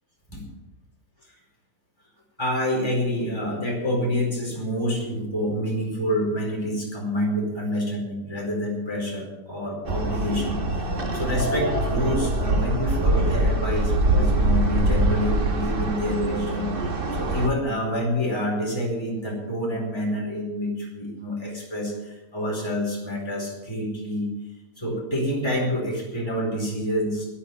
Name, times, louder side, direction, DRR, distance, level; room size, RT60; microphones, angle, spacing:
voice 1, 2.4-16.7 17.1-24.3 24.8-27.3, equal, 15° left, -2 dB, 4.6 m, -27 dB
sound 1, 9.8-17.5, right 1 dB, 35° right, 1.3 m, -24 dB
13.0 x 10.5 x 7.9 m, 1.0 s
omnidirectional pair, 1.7 m